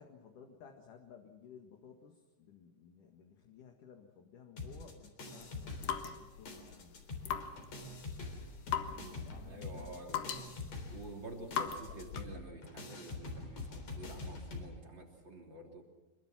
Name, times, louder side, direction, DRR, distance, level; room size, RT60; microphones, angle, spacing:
voice 1, 0.0-7.0 9.2-10.8, left 7 dB, 55° left, 3 dB, 2.8 m, -57 dB
sound 1, 4.6-6.2 6.5-14.7, left 3 dB, 40° left, 4.5 m, -45 dB
sound 2, 5.4-12.4, left 8 dB, 70° left, 3.4 m, -41 dB
voice 2, 8.9-10.3 10.9-15.8, right 2 dB, 30° right, 1 dB, 3.3 m, -49 dB
26.5 x 23.0 x 6.1 m, 1.2 s
omnidirectional pair, 5.1 m